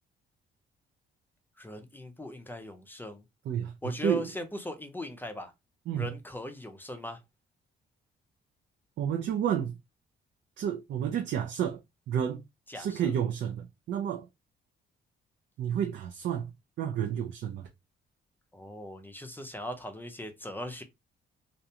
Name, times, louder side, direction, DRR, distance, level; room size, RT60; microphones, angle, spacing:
voice 1, 1.6-3.2 3.8-5.5 5.9-7.2 12.7-13.1 18.5-20.8, left 1 dB, 10° left, 0.6 m, -39 dB
voice 2, 9.0-9.8 10.6-11.8 12.1-12.4 12.7-14.3 15.6-16.5 16.8-17.7, right 9 dB, 65° right, 0.5 m, -30 dB
2.5 x 2.1 x 2.8 m
cardioid pair, 90°, 20 cm